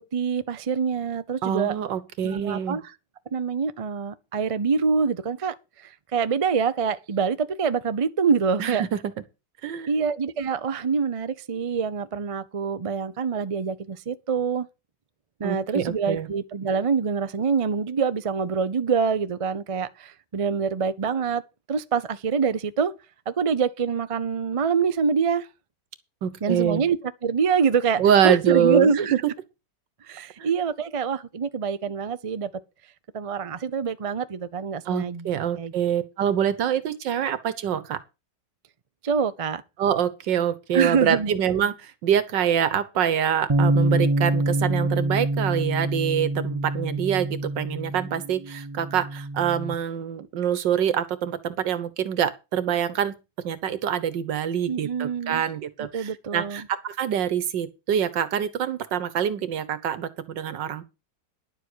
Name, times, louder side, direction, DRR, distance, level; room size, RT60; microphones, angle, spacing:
voice 1, 0.0-1.7 2.2-2.9 3.3-8.8 9.9-14.7 15.4-21.4 21.7-22.9 23.3-25.5 26.4-29.1 30.0-32.5 33.1-35.3 35.6-35.7 39.0-39.6 40.7-41.3 54.7-55.4 55.8-56.7, right 6 dB, 45° right, 0.4 m, -25 dB
voice 2, 1.4-2.8 8.6-8.9 9.6-9.9 15.4-16.3 26.2-26.8 28.0-29.2 30.4-30.5 34.9-38.0 39.8-53.2 53.4-60.8, right 9 dB, 85° right, 1.8 m, -25 dB
Bass guitar, 43.5-49.7, right 2 dB, 15° right, 1.0 m, -25 dB
11.0 x 7.3 x 6.3 m
omnidirectional pair, 1.9 m